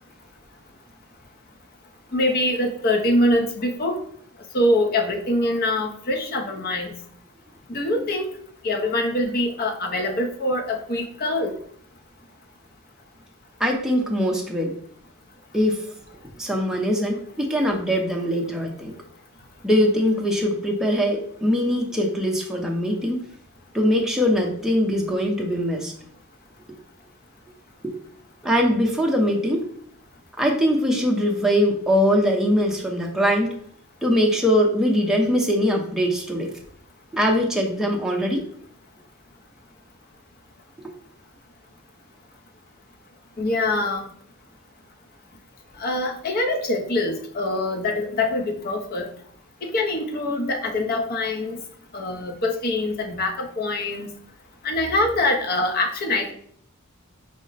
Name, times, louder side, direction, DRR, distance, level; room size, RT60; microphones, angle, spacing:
voice 1, 2.1-4.0 4.5-6.9 7.7-8.3 8.6-11.5 43.4-44.1 45.8-49.1 49.6-51.6 51.9-54.1 54.6-56.3, left 1 dB, 45° left, 3 dB, 0.6 m, -24 dB
voice 2, 13.6-14.7 15.5-15.8 16.4-18.9 19.6-23.3 23.7-25.9 27.8-27.9 28.4-29.6 30.4-33.6 34.0-36.5 37.1-38.4, equal, ahead, -1 dB, 0.6 m, -22 dB
5.0 x 2.1 x 3.9 m, 0.64 s
head